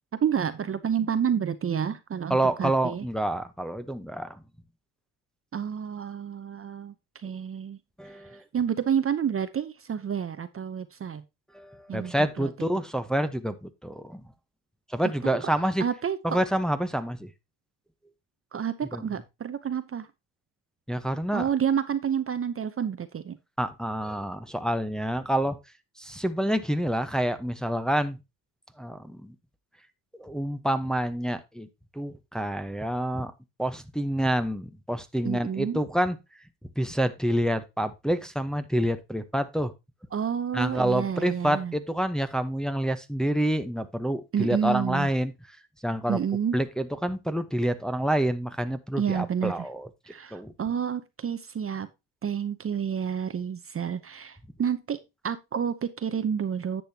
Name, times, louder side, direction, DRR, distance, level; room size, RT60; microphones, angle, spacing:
voice 1, 0.2-3.0 5.5-6.9 7.2-7.8 8.5-11.2 11.9-12.5 15.8-16.2 18.5-20.1 21.3-23.4 35.2-35.8 40.1-41.7 44.3-45.1 46.1-46.6 48.9-49.7 50.1-51.9 52.2-55.0 55.2-56.8, right 8 dB, 30° right, 11 dB, 0.8 m, -29 dB
voice 2, 2.3-4.4 8.0-8.4 11.5-14.2 14.9-15.8 16.2-17.3 18.9-19.0 20.9-21.5 23.6-25.6 26.0-28.2 28.8-29.3 30.2-31.7 31.9-33.3 33.6-36.2 36.8-39.7 40.5-45.3 45.8-46.2 46.5-49.9 50.3-50.5, right 1 dB, ahead, 8 dB, 0.9 m, -28 dB
10.5 x 7.8 x 2.8 m, 0.24 s
cardioid pair, 100°, 42 cm